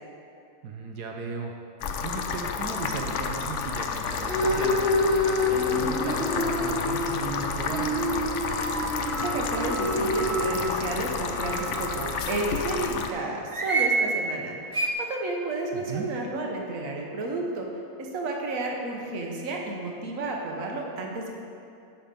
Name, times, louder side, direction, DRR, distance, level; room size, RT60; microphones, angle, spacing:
voice 1, 0.6-1.5 2.0-8.0 15.7-16.1, right 4 dB, 85° right, 1 dB, 1.4 m, -36 dB
sound 1, 1.8-13.1, left 6 dB, 65° left, 0.8 m, -31 dB
sound 2, 4.1-12.3, left 1 dB, 5° right, 1.8 m, -28 dB
sound 3, 8.4-12.2 13.5-14.0 14.7-14.9, right 4 dB, 30° right, 0.6 m, -31 dB
voice 2, 9.1-14.5 15.0-17.7 18.0-21.3, right 2 dB, 60° right, 0 dB, 1.4 m, -32 dB
10.0 x 5.9 x 5.2 m, 2.5 s
omnidirectional pair, 1.7 m